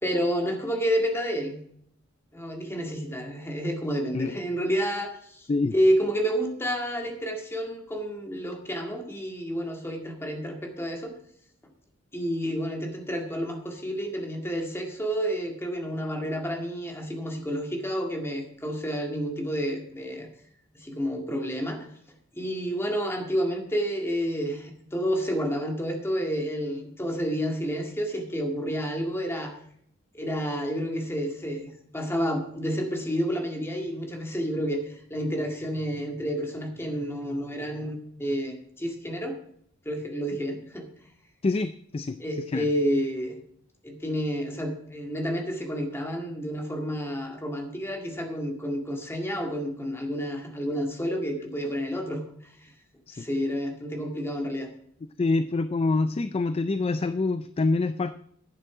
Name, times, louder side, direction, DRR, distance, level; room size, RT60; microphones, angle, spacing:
voice 1, 0.0-1.6 2.3-11.1 12.1-20.3 20.7-21.9 22.3-29.5 30.1-39.4 39.9-40.9 42.2-43.4 43.8-52.7 53.1-54.7, equal, 10° left, 2 dB, 2.0 m, -30 dB
voice 2, 41.4-42.2 42.5-42.6 53.1-53.2 55.2-58.1, left 3 dB, 30° left, 11 dB, 0.4 m, -26 dB
11.5 x 9.2 x 4.9 m, 0.67 s
head